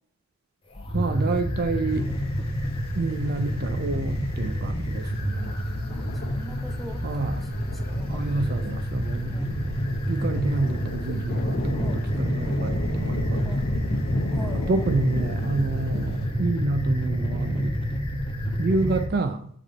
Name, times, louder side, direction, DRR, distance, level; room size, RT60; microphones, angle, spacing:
sound 1, 0.7-19.1, equal, 25° left, 1.0 m, -28 dB
voice 1, 0.9-2.1 2.9-5.5 7.0-7.5 8.1-9.4 10.1-13.4 14.5-17.8 18.6-19.5, right 3 dB, 50° right, 8 dB, 0.5 m, -28 dB
sound 2, 2.0-2.6 4.4-4.6 5.3-16.3, left 1 dB, 50° left, 1.1 m, -34 dB
voice 2, 5.9-8.6 9.3-9.6 11.7-12.0 13.4-13.6 14.3-14.8, right 1 dB, ahead, 3 dB, 0.7 m, -43 dB
7.3 x 3.6 x 4.0 m, 0.65 s
head